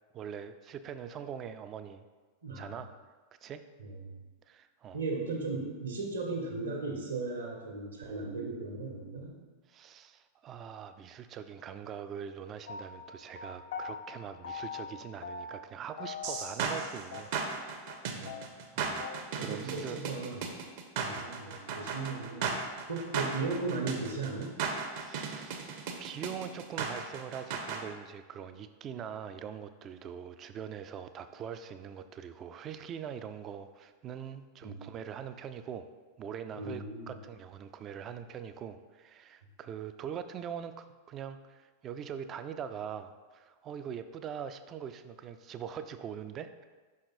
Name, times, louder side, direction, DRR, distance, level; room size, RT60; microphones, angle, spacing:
voice 1, 0.1-2.0 2.6-2.9 3.4-3.6 4.5-5.0 9.7-18.0 18.7-19.1 19.4-20.0 21.1-21.3 24.9-25.7 26.0-35.9 36.2-46.5, right 8 dB, 30° right, 10 dB, 0.4 m, -42 dB
voice 2, 3.8-4.1 4.9-9.4 18.1-18.4 19.4-20.5 21.0-22.5 22.9-24.6 34.6-34.8 36.5-37.2, right 3 dB, 70° right, 0 dB, 1.3 m, -36 dB
sound 1, 12.7-14.0 14.4-14.9 15.2-15.7 16.0-16.8 17.1-17.2 17.5-17.6 17.9-18.0 18.3-19.2, left 5 dB, 60° left, 0.5 m, -41 dB
sound 2, 16.2-27.8, right 5 dB, 50° right, 0.8 m, -36 dB
5.7 x 4.9 x 4.3 m, 1.4 s
figure-of-eight pair, 90°, 0 cm